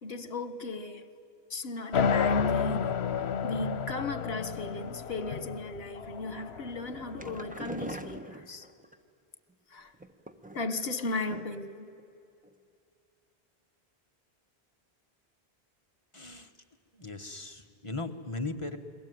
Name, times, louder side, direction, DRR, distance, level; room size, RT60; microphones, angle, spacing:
voice 1, 0.0-1.0 1.5-2.9 3.4-8.6 9.7-9.9 10.5-11.9, left 3 dB, 70° left, 1.6 m, -36 dB
sound 1, 1.9-8.0, left 6 dB, 85° left, 1.1 m, -31 dB
sound 2, 6.9-9.0 9.9-10.9 11.3-11.7 12.0-12.1 12.4-12.5, right 1 dB, 10° right, 1.0 m, -43 dB
voice 2, 16.1-16.5 16.9-18.8, left 2 dB, 30° left, 1.3 m, -38 dB
29.5 x 21.5 x 9.4 m
omnidirectional pair, 1.1 m